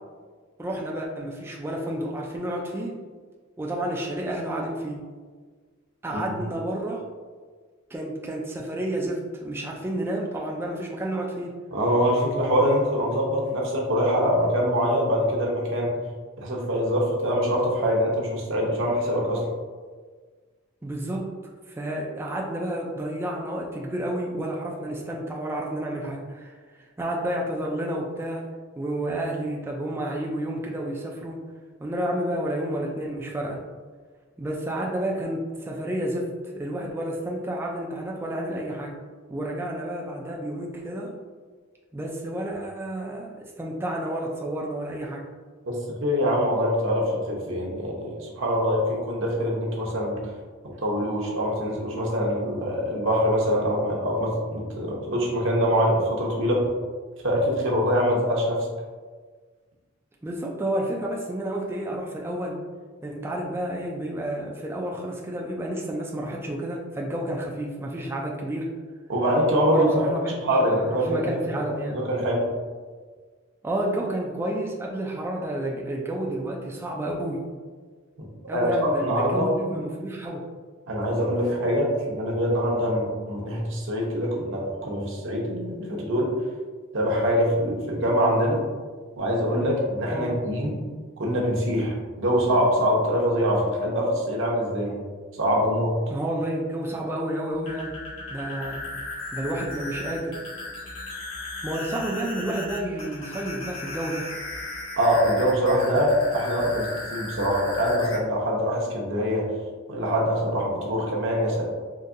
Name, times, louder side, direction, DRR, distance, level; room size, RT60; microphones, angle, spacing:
voice 1, 0.6-2.9 3.6-5.0 6.0-7.0 7.9-11.5 20.8-21.3 21.7-26.5 27.0-28.4 28.8-31.4 31.8-33.6 34.4-36.3 36.5-39.0 39.3-41.1 41.9-45.3 60.2-62.6 63.0-68.7 69.7-72.0 73.6-77.4 78.5-80.4 90.1-90.4 96.1-97.9 98.3-98.8 99.3-100.4 101.6-104.3, right 1 dB, 10° right, -2 dB, 0.3 m, -30 dB
voice 2, 11.7-16.0 16.4-19.4 45.7-50.2 50.8-56.7 57.2-58.7 69.1-70.1 70.4-71.2 71.9-72.4 78.2-78.3 78.5-79.5 80.9-86.3 86.9-88.6 89.1-90.8 91.2-95.0 95.4-96.0 105.0-109.5 109.9-111.6, equal, 60° right, -2 dB, 0.8 m, -24 dB
sound 1, 97.5-108.2, left 2 dB, 70° left, 1.1 m, -36 dB
3.9 x 2.6 x 2.5 m, 1.5 s
head